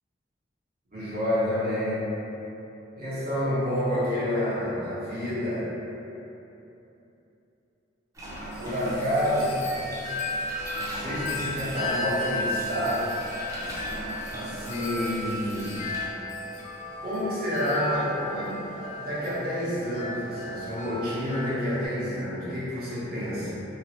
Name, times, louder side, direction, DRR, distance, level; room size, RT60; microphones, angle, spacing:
voice 1, 0.9-2.1 3.0-5.7 8.6-9.6 10.8-13.1 14.3-15.8 17.0-23.6, equal, 50° right, -10 dB, 0.9 m, -29 dB
sound 1, 8.1-16.1, right 1 dB, 20° right, 0.5 m, -40 dB
Wind chime, 8.5-21.9, left 1 dB, 40° left, 0.4 m, -35 dB
3.2 x 2.0 x 2.8 m, 3.0 s
head